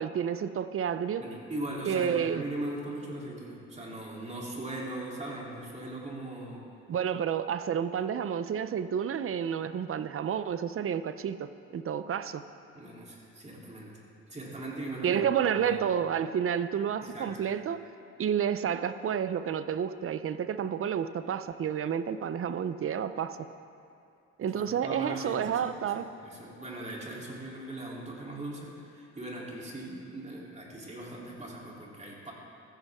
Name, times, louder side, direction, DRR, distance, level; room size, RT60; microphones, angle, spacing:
voice 1, 0.0-1.2 1.9-2.4 6.9-12.4 15.0-17.8 18.2-23.4 24.4-26.1, right 8 dB, 45° right, 12 dB, 0.6 m, -30 dB
voice 2, 1.2-6.7 12.7-14.0 14.3-15.2 15.6-15.8 17.0-17.4 24.5-32.3, right 1 dB, 25° right, -4 dB, 3.3 m, -40 dB
14.5 x 14.5 x 3.6 m, 2.6 s
cardioid pair, 90°, 30 cm